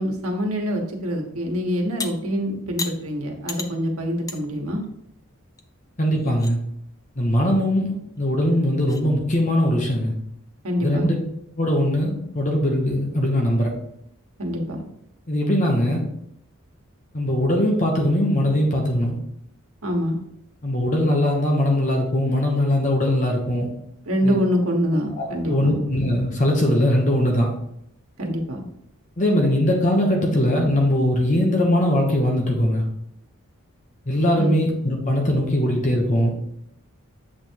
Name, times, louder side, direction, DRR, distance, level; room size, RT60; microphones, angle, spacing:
voice 1, 0.0-4.8 10.6-11.1 14.4-14.8 19.8-20.2 24.0-25.8 28.2-28.6 34.4-34.6, equal, 85° right, 1 dB, 1.3 m, -25 dB
sound 1, 2.0-2.1 2.8-3.0 3.5-3.7 4.3-4.4 4.8-4.9 5.6-5.7 6.1-6.5 8.2-8.3 8.8-9.0, left 4 dB, 15° left, 0.4 m, -32 dB
voice 2, 6.0-6.6 7.2-10.1 10.8-11.2 11.6-13.7 15.3-16.0 17.1-19.2 20.6-23.7 24.2-24.4 25.2-27.5 29.2-32.8 34.1-36.3, left 1 dB, 35° left, 0 dB, 1.0 m, -21 dB
7.5 x 3.5 x 4.6 m, 0.76 s
head